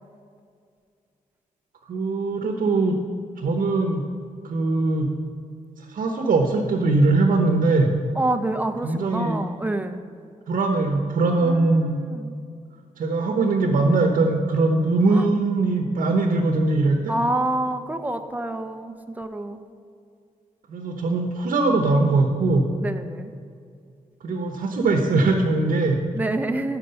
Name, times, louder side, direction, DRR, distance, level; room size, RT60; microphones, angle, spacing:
voice 1, 1.9-3.0 3.4-4.0 4.4-5.1 5.9-7.9 8.8-9.4 10.5-12.0 13.0-17.1 20.7-22.7 24.2-26.0, right 3 dB, 70° right, 3 dB, 1.0 m, -21 dB
voice 2, 8.1-10.0 11.4-12.3 15.1-15.3 17.1-19.6 22.8-23.3 26.1-26.8, right 2 dB, 10° right, 7 dB, 0.7 m, -27 dB
12.0 x 4.5 x 5.7 m, 2.3 s
cardioid pair, 75°, 15 cm